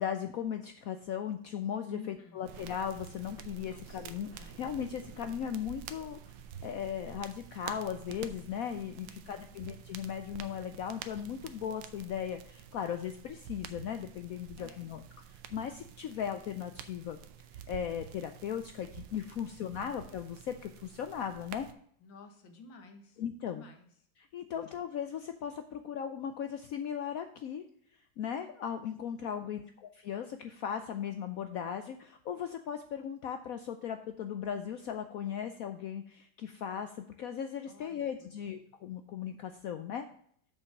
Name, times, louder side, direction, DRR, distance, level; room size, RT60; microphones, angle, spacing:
voice 1, 0.0-15.0 15.3-17.2 17.5-21.7 23.2-23.6 24.2-27.6 28.2-40.1, left 8 dB, 70° left, 8 dB, 0.8 m, -37 dB
voice 2, 1.9-2.5 3.6-4.1 4.4-4.6 8.9-9.6 14.6-14.8 19.3-19.4 22.0-23.2 23.5-23.9 24.6-24.8 29.5-29.8 37.7-38.3 38.6-38.7, left 4 dB, 85° left, 5 dB, 2.0 m, -53 dB
sound 1, 2.4-21.7, right 9 dB, 85° right, 1.4 m, -49 dB
7.0 x 5.5 x 5.8 m, 0.64 s
omnidirectional pair, 2.0 m